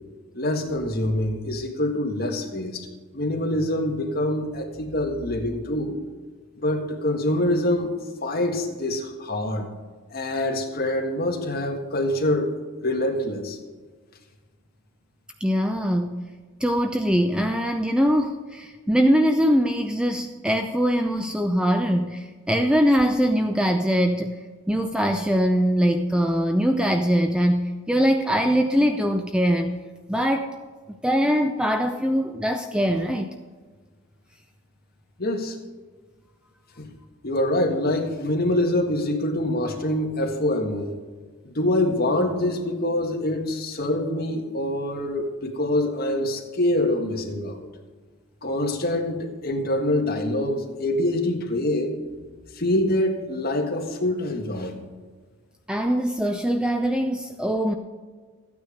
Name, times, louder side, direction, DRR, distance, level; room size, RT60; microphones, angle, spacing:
voice 1, 0.3-2.9 3.1-6.0 6.6-9.7 10.1-13.6 35.2-35.6 36.8-36.9 37.2-40.9 41.5-47.7 48.4-52.0 52.6-54.8, left 1 dB, 45° left, 2 dB, 1.7 m, -25 dB
voice 2, 15.4-16.3 16.6-24.4 24.7-29.7 30.1-30.5 31.0-33.3 55.7-57.7, equal, 5° right, 5 dB, 0.5 m, -22 dB
13.5 x 9.3 x 5.0 m, 1.4 s
head